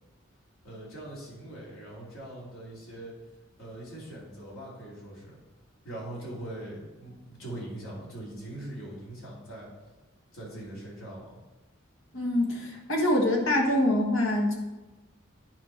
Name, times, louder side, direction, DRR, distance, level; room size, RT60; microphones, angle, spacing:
voice 1, 0.6-3.1 3.6-5.4 5.8-9.7 10.3-11.4, right 1 dB, 85° left, -5 dB, 3.0 m, -41 dB
voice 2, 12.1-14.5, left 1 dB, 70° left, -1 dB, 1.5 m, -25 dB
10.5 x 4.5 x 4.3 m, 1.1 s
head